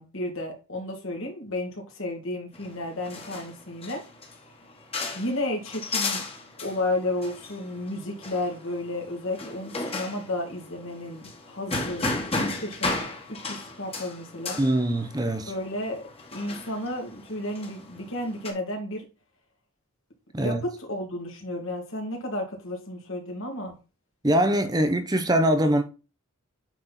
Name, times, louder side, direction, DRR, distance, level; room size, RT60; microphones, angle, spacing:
voice 1, 0.0-4.0 5.1-6.2 6.6-12.1 12.3-13.0 13.3-14.6 15.5-16.0 16.3-19.0 20.4-23.8, left 1 dB, 65° left, 2.5 m, -32 dB
sound 1, 2.5-18.5, left 3 dB, 25° left, 1.6 m, -35 dB
voice 2, 14.6-15.5 20.3-20.6 24.2-25.8, right 1 dB, 20° right, 0.7 m, -23 dB
8.9 x 4.3 x 4.1 m
head